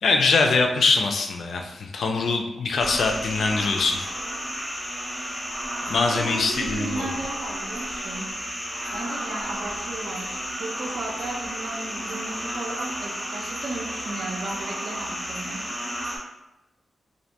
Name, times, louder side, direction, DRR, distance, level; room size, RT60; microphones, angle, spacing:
voice 1, 0.0-4.0 5.9-7.1, left 4 dB, 70° left, 3 dB, 0.3 m, -23 dB
sound 1, 2.8-16.2, equal, 10° left, 0.6 m, -32 dB
voice 2, 6.1-8.3 8.9-15.7, right 2 dB, 70° right, 1 dB, 0.4 m, -35 dB
2.5 x 2.1 x 2.8 m, 0.96 s
wide cardioid pair, 140°, 0 cm